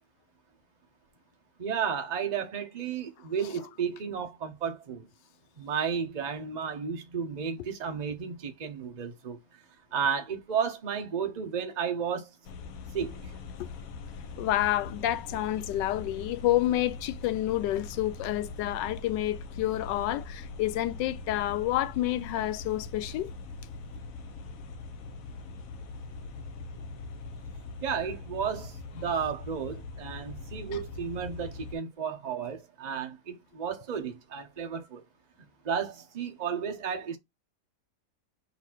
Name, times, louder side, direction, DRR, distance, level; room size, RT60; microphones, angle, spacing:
voice 1, 1.6-5.1 5.6-9.4 9.9-12.3 12.9-13.2 27.8-35.0 35.6-37.2, right 7 dB, 35° right, 0.7 m, -33 dB
sound 1, 12.4-31.8, left 3 dB, 65° left, 1.0 m, -42 dB
voice 2, 14.4-23.3, left 14 dB, 85° left, 1.2 m, -29 dB
4.2 x 2.6 x 4.4 m
omnidirectional pair, 1.9 m